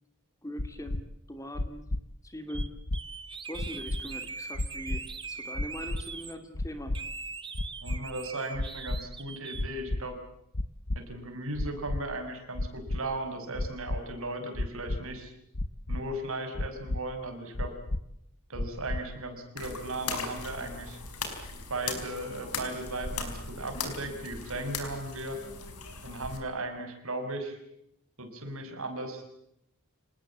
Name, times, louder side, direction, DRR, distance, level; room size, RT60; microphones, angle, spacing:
voice 1, 0.4-1.9 2.2-2.7 3.5-7.0, equal, 15° left, 8 dB, 2.8 m, -41 dB
sound 1, 0.6-1.0 1.5-2.0 2.5-3.0 3.5-4.0 4.5-5.0 5.5-6.0 6.5-7.0 7.5-8.0 8.5-9.0 9.5-10.0 10.5-11.0 11.5-12.0 12.5-13.0 13.5-14.0 14.5-15.0 15.5-16.0 16.5-17.0 17.5-18.0 18.5-19.0, left 1 dB, 60° left, 1.1 m, -31 dB
sound 2, 2.5-2.7 2.9-6.3 6.9-9.6, right 5 dB, 20° right, 1.6 m, -41 dB
voice 2, 7.8-10.2 10.9-15.3 15.9-17.7 18.5-21.0 21.7-25.4 26.0-27.6 28.2-29.2, right 2 dB, 65° right, 6 dB, 5.9 m, -36 dB
sound 3, 19.6-26.4, left 4 dB, 85° left, 4.9 m, -38 dB
27.5 x 20.0 x 8.7 m, 0.75 s
head